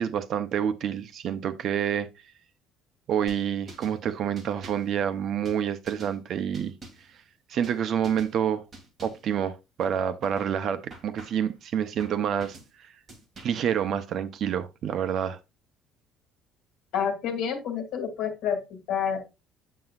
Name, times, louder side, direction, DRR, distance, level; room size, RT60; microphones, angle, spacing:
voice 1, 0.0-2.1 3.1-6.7 7.5-8.6 9.0-12.6 13.4-15.4, right 8 dB, 45° right, 0.7 m, -28 dB
sound 1, 3.3-4.0 4.4-4.9 5.5-6.2 6.5-7.1 7.6-8.3 8.7-9.3 9.8-10.5 10.9-11.5 12.0-12.7 13.1-13.7, right 2 dB, 20° right, 2.0 m, -47 dB
voice 2, 16.9-19.2, left 7 dB, 65° left, 2.4 m, -29 dB
7.8 x 7.6 x 2.4 m
cardioid pair, 175°, 0 cm